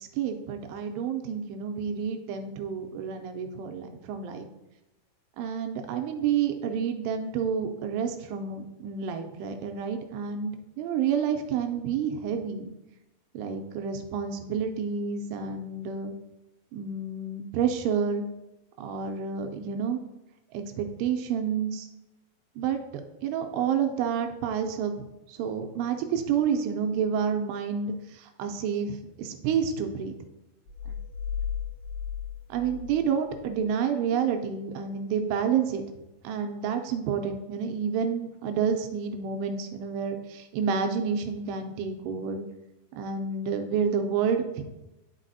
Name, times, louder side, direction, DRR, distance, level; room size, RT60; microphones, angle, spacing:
voice 1, 0.0-4.5 5.4-12.7 13.3-16.1 16.7-18.2 18.8-20.0 20.5-21.9 22.6-24.9 25.3-30.2 30.9-31.0 32.5-35.8 36.2-42.4 43.0-44.6, right 7 dB, 85° right, 5 dB, 2.5 m, -29 dB
sound 1, 30.7-33.5, left 8 dB, 80° left, 2.4 m, -35 dB
11.5 x 4.0 x 2.6 m, 0.97 s
omnidirectional pair, 5.2 m